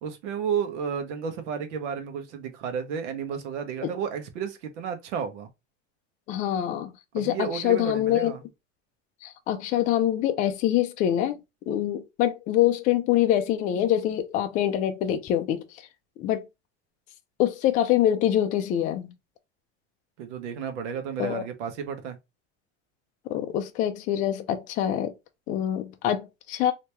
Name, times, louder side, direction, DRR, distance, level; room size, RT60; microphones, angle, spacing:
voice 1, 0.0-5.5 7.1-8.4 20.2-22.2, right 7 dB, 85° right, 1.1 m, -32 dB
voice 2, 6.3-8.3 9.2-11.4 11.7-15.6 16.2-16.5 17.4-19.1 21.2-21.4 23.3-25.1 25.5-26.7, left 11 dB, 25° left, 0.3 m, -25 dB
3.3 x 2.8 x 3.0 m
supercardioid pair, 160°, 34 cm